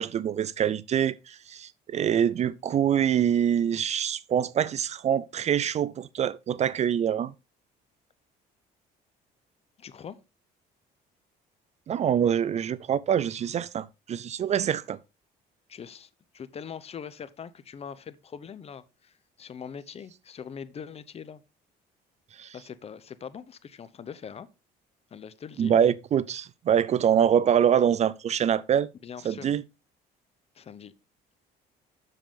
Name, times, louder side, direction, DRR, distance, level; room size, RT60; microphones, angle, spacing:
voice 1, 0.0-7.3 11.9-15.0 22.4-22.5 25.6-28.9 29.2-29.6, right 9 dB, 40° right, 0.4 m, -25 dB
voice 2, 9.8-10.2 15.7-21.4 22.5-24.5 25.1-25.8 29.0-29.5 30.5-30.9, left 7 dB, 35° left, 0.7 m, -42 dB
7.6 x 6.8 x 3.6 m
cardioid pair, 110°, 17 cm